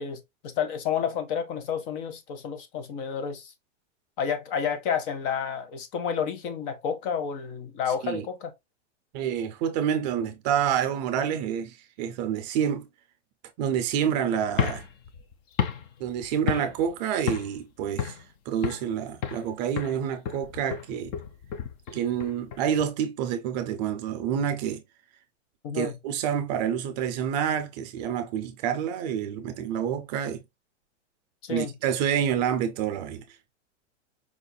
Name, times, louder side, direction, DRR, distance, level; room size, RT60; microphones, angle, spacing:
voice 1, 0.0-3.5 4.2-8.5 25.6-25.9 31.4-31.7, left 7 dB, 45° left, 0.9 m, -30 dB
voice 2, 9.1-12.9 13.6-14.8 16.0-18.2 18.5-21.1 21.9-24.8 25.7-30.4 31.5-33.2, right 9 dB, 35° right, 0.5 m, -28 dB
sound 1, 14.5-16.9 17.3-17.6 18.0-18.9 19.2-19.5 19.8-22.9, left 8 dB, 25° left, 0.4 m, -32 dB
4.9 x 2.6 x 2.2 m
hypercardioid pair, 140°, 37 cm